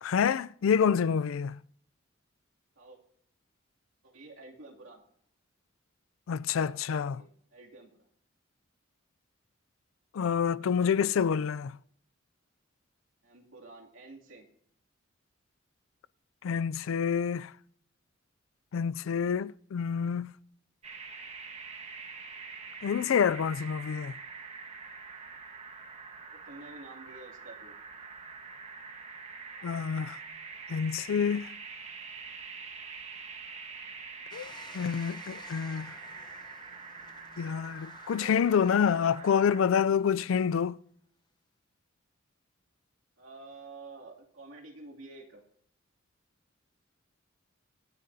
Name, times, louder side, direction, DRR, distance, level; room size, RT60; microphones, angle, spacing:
voice 1, 0.0-1.6 6.3-7.2 10.1-11.8 16.4-17.5 18.7-20.3 22.8-24.2 29.6-30.2 30.7-31.5 34.3-36.0 37.4-40.8, left 7 dB, 80° left, 0.4 m, -27 dB
voice 2, 4.0-5.0 6.5-7.9 13.2-14.5 26.3-27.8 38.0-39.4 43.2-45.4, right 3 dB, 75° right, 2.6 m, -50 dB
sound 1, 20.8-39.6, right 5 dB, 35° right, 1.3 m, -45 dB
sound 2, 34.3-39.3 39.9-40.0, left 4 dB, 20° left, 0.8 m, -54 dB
25.5 x 9.2 x 2.7 m
head